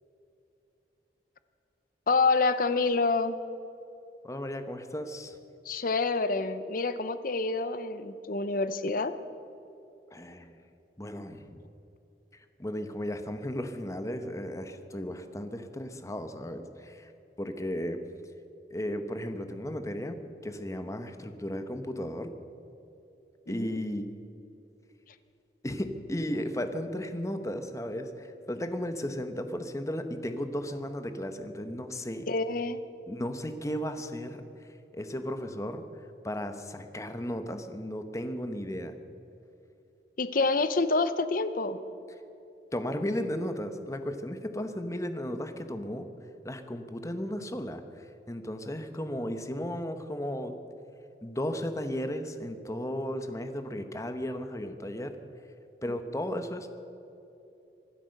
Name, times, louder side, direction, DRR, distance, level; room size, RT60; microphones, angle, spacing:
voice 1, 2.1-3.4 5.6-9.1 23.5-23.8 32.3-32.8 40.2-41.8 55.9-56.0, left 3 dB, 50° left, 13 dB, 0.7 m, -27 dB
voice 2, 4.2-5.3 10.1-10.6 11.0-11.6 12.6-17.1 17.4-18.0 18.7-22.3 23.5-24.1 25.6-32.3 33.1-34.4 34.9-35.8 36.2-38.9 42.7-46.1 46.4-47.8 48.3-50.6 51.2-55.1 55.8-56.7, equal, 20° left, 8 dB, 1.0 m, -35 dB
25.0 x 8.6 x 6.5 m, 2.9 s
head